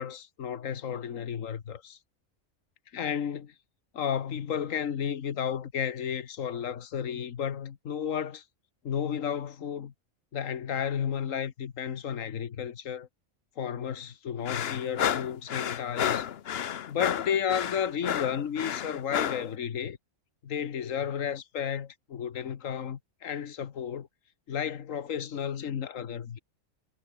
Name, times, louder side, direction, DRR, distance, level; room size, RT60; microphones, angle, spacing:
voice 1, 0.0-2.0 2.9-3.5 3.9-8.4 8.8-9.9 10.3-13.1 13.6-16.2 16.9-20.0 20.4-24.1 24.5-26.4, left 8 dB, 80° left, 1.6 m, -32 dB
sound 1, 14.5-19.5, left 9 dB, 55° left, 0.9 m, -31 dB
omnidirectional pair, 1.4 m